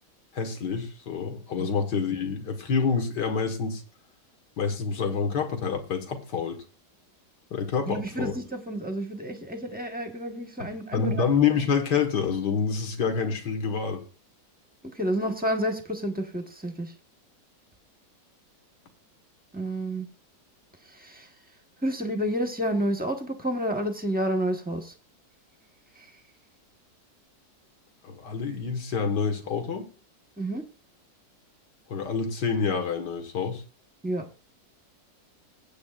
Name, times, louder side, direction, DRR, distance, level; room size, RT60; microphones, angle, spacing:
voice 1, 0.3-3.8 4.6-6.6 7.5-8.3 10.6-14.0 28.0-29.9 31.9-33.6, left 6 dB, 70° left, 6 dB, 2.0 m, -27 dB
voice 2, 7.9-11.3 14.9-16.9 19.5-20.1 20.9-21.3 21.8-24.9 26.0-26.1 30.4-30.6 34.0-34.2, equal, 5° right, 4 dB, 0.7 m, -30 dB
19.5 x 8.6 x 2.4 m, 0.37 s
omnidirectional pair, 1.9 m